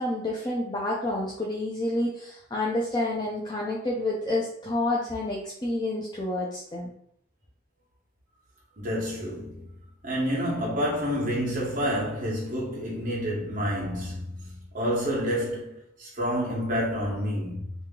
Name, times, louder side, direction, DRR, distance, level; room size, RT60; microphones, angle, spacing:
voice 1, 0.0-6.9, left 1 dB, 20° left, 0.5 m, -29 dB
voice 2, 8.8-9.6 10.0-17.7, equal, 45° right, 1.2 m, -29 dB
3.0 x 2.7 x 3.7 m
head